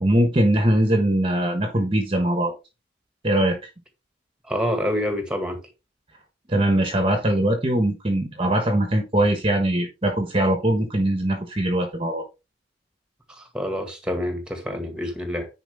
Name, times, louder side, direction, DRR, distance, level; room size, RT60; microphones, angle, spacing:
voice 1, 0.0-2.5 3.2-3.6 6.5-12.2, right 1 dB, 25° right, 1.3 m, -21 dB
voice 2, 4.5-5.6 13.3-15.5, left 1 dB, 5° right, 1.9 m, -27 dB
10.0 x 5.0 x 3.5 m
head